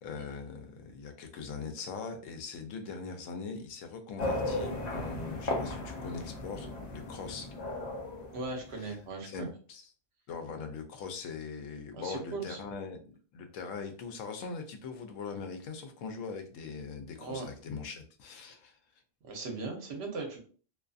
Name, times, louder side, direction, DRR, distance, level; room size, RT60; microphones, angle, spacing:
voice 1, 0.0-7.5 8.8-9.0 9.2-9.9 10.3-13.0 13.3-18.8, left 5 dB, 85° left, 6 dB, 0.9 m, -41 dB
sound 1, 4.2-9.0, left 2 dB, 50° left, 0.5 m, -36 dB
voice 2, 8.3-9.5 11.9-12.6 17.2-17.5 19.2-20.4, right 3 dB, 65° right, 2 dB, 0.9 m, -38 dB
2.5 x 2.5 x 2.3 m, 0.42 s
omnidirectional pair, 1.3 m